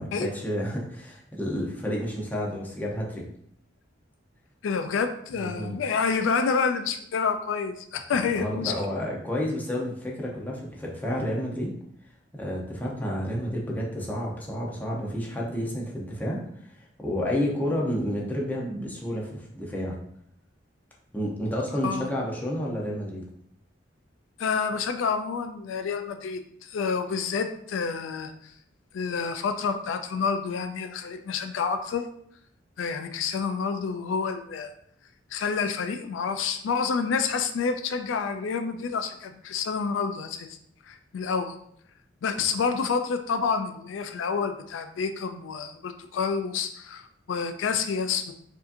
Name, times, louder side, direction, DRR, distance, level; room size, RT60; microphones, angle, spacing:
voice 1, 0.0-3.2 5.4-5.7 8.3-11.7 12.3-20.0 21.1-23.2, equal, 10° left, -3 dB, 0.8 m, -30 dB
voice 2, 4.6-8.7 21.8-22.0 24.4-28.5 28.9-32.1 32.8-34.7 35.3-40.6 40.9-41.5 42.2-48.3, left 5 dB, 90° left, 8 dB, 0.4 m, -28 dB
4.8 x 2.7 x 2.6 m, 0.69 s
head